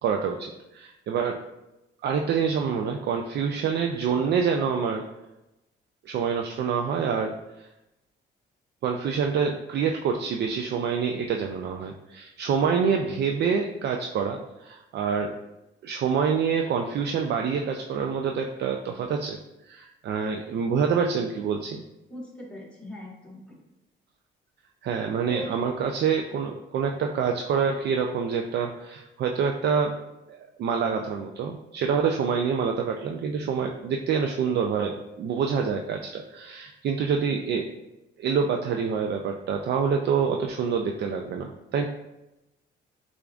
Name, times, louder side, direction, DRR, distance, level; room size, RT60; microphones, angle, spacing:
voice 1, 0.0-1.4 2.0-5.1 6.0-7.7 8.8-15.3 15.8-19.4 19.7-21.8 24.8-29.9 30.3-37.7 38.2-41.9, right 6 dB, 60° right, 3 dB, 0.4 m, -26 dB
voice 2, 22.1-23.6 25.3-25.5, equal, 5° left, -4 dB, 1.4 m, -40 dB
6.6 x 2.5 x 2.4 m, 0.94 s
cardioid pair, 90°, 20 cm